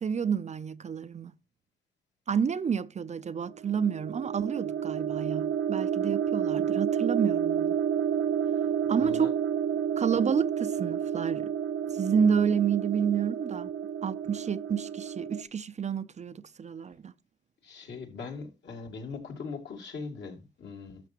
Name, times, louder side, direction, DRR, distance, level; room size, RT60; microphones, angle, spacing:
voice 1, 0.0-1.3 2.3-7.8 8.9-9.3 10.0-11.5 11.9-13.7 14.0-17.1, right 7 dB, 35° right, 0.5 m, -29 dB
sound 1, 3.5-15.4, right 8 dB, 85° right, 1.0 m, -30 dB
voice 2, 8.8-9.3 17.6-21.0, left 4 dB, 65° left, 2.7 m, -40 dB
12.5 x 6.9 x 3.0 m
cardioid pair, 90°, 20 cm